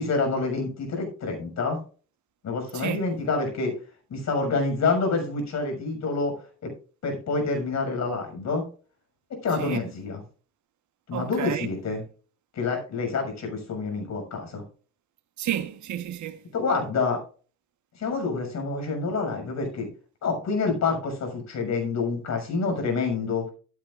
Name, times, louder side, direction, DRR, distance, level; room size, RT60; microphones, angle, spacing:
voice 1, 0.0-1.8 2.4-3.7 4.1-6.3 6.6-6.7 7.0-8.6 9.4-10.2 11.1-12.0 12.5-14.6 16.5-17.2 17.9-19.9 20.2-23.5, left 4 dB, 65° left, 6.6 m, -27 dB
voice 2, 11.1-11.7 15.4-16.4, right 11 dB, 70° right, 1.4 m, -31 dB
14.0 x 11.5 x 2.6 m
cardioid pair, 90°, 30 cm